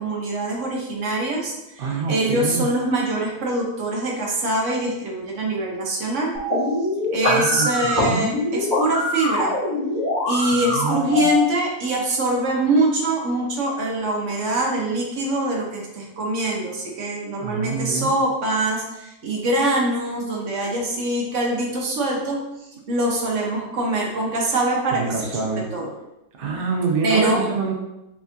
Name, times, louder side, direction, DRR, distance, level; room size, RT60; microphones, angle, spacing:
voice 1, 0.0-6.3 7.1-9.5 10.3-22.4 22.9-25.1 25.7-25.9 27.0-27.4, right 2 dB, 55° right, -1 dB, 1.1 m, -23 dB
voice 2, 1.8-2.7 7.2-8.1 10.7-11.3 17.4-18.1 24.9-25.7 26.4-27.7, right 4 dB, 80° right, 1 dB, 0.5 m, -26 dB
sound 1, 6.3-11.3, left 1 dB, 15° left, 1.5 m, -23 dB
4.7 x 3.5 x 2.6 m, 0.93 s
omnidirectional pair, 1.8 m